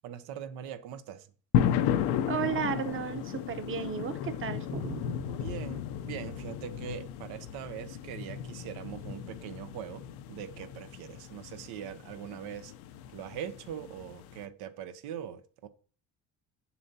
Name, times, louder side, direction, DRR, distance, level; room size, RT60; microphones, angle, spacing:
voice 1, 0.0-1.3 5.4-10.0 10.3-12.7 13.1-15.7, right 9 dB, 90° right, 0.8 m, -41 dB
sound 1, 1.5-14.5, left 9 dB, 85° left, 0.6 m, -34 dB
voice 2, 2.3-5.5, right 7 dB, 35° right, 0.8 m, -34 dB
7.1 x 6.9 x 2.7 m
cardioid pair, 95°, 37 cm